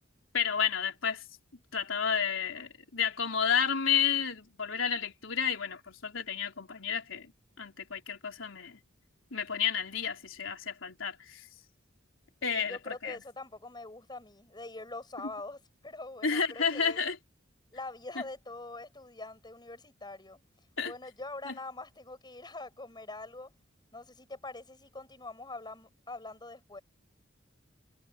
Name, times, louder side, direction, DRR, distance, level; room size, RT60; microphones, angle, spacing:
voice 1, 0.3-1.2 1.7-7.3 7.6-8.8 9.3-11.4 12.4-13.2 16.2-17.2 20.8-20.9 21.5-21.6, left 7 dB, 80° left, 3.9 m, -31 dB
voice 2, 12.4-17.0 17.7-20.4 20.8-23.5 23.9-26.8, left 2 dB, 20° left, 5.8 m, -44 dB
head